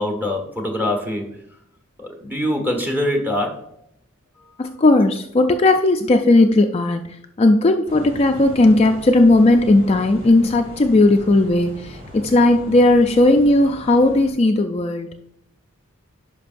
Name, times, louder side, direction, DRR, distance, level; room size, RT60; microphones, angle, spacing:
voice 1, 0.0-1.3 2.0-3.7, left 1 dB, 10° right, 2 dB, 1.3 m, -23 dB
voice 2, 4.6-15.1, left 2 dB, 30° left, 5 dB, 0.4 m, -16 dB
sound 1, 7.9-14.3, equal, 30° right, 2.2 m, -39 dB
11.0 x 5.3 x 2.6 m, 0.73 s
head